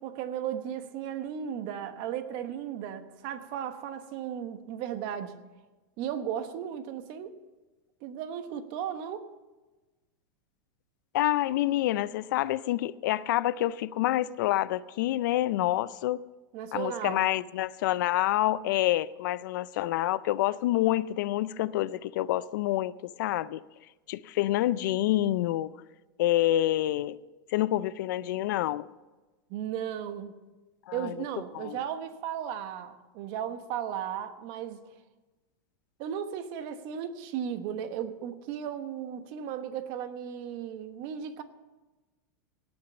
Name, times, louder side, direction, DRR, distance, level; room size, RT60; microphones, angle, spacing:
voice 1, 0.0-5.3 6.0-7.4 8.0-9.3 16.5-17.3 29.5-30.3 30.9-34.8 36.0-41.4, right 9 dB, 45° right, 1.1 m, -35 dB
voice 2, 11.1-16.3 16.7-23.6 24.1-25.7 26.2-27.2 27.5-28.9 30.9-31.1 31.5-31.8, left 14 dB, 60° left, 0.4 m, -27 dB
18.0 x 6.3 x 7.0 m
supercardioid pair, 150°, 11 cm